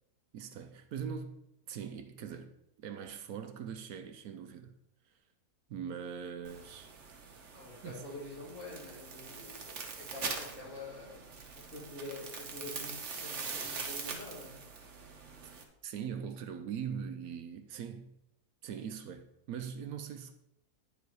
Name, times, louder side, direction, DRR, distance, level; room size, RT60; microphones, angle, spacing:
voice 1, 0.3-1.4 1.7-2.5 2.8-4.8 5.0-5.1 5.7-6.9 7.8-8.0 15.4-15.5 15.8-18.1 18.6-20.4, right 7 dB, 70° right, 1.0 m, -41 dB
sound 1, 6.4-15.6, right 5 dB, 50° right, 1.2 m, -43 dB
voice 2, 7.5-11.3 11.6-14.6, left 2 dB, 50° left, 3.0 m, -46 dB
9.9 x 4.9 x 4.7 m
omnidirectional pair, 1.7 m